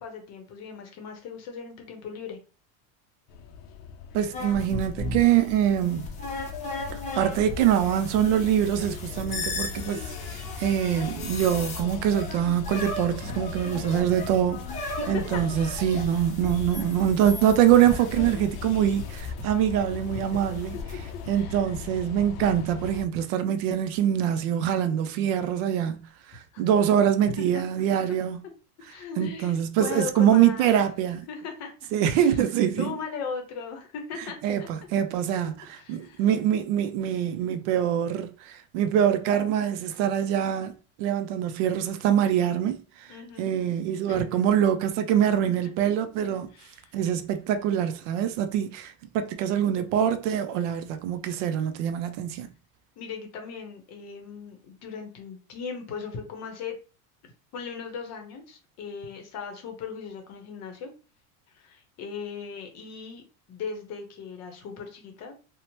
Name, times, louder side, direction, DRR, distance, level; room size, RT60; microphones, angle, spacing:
voice 1, 0.0-2.4 14.2-14.3 15.0-15.4 15.9-16.2 21.3-21.6 26.5-26.6 27.2-27.6 28.8-30.7 31.3-31.7 32.1-32.4 32.8-34.7 35.7-36.2 43.1-43.5 44.1-44.3 46.5-47.0 51.6-51.7 53.0-56.8 57.5-60.9 61.5-63.2 63.5-65.4, left 5 dB, 40° left, 0.7 m, -38 dB
sound 1, 3.3-23.1, left 6 dB, 75° left, 0.5 m, -38 dB
voice 2, 4.1-6.1 6.9-20.7 21.3-26.0 26.6-28.4 29.2-31.2 31.9-32.9 34.4-40.7 41.0-42.8 43.4-46.5 46.9-52.5, right 10 dB, 60° right, 0.5 m, -24 dB
sound 2, 4.3-19.4 20.3-20.9, left 2 dB, 20° left, 0.3 m, -37 dB
2.8 x 2.1 x 2.9 m
supercardioid pair, 135°, 41 cm